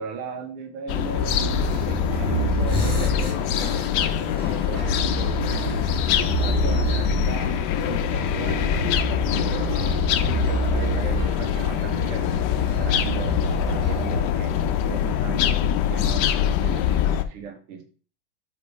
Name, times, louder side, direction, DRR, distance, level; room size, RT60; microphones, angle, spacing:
voice 1, 0.0-7.6 7.9-10.1 10.4-14.6 14.9-17.8, right 6 dB, 85° right, 5 dB, 2.1 m, -38 dB
sound 1, 0.9-17.2, left 9 dB, 85° left, 0.9 m, -24 dB
sound 2, 1.2-14.2, right 4 dB, 30° right, 0.6 m, -29 dB
sound 3, 1.5-2.2 2.4-4.4 5.4-6.9, left 3 dB, 15° left, 1.5 m, -35 dB
5.3 x 5.0 x 4.6 m, 0.38 s
omnidirectional pair, 2.4 m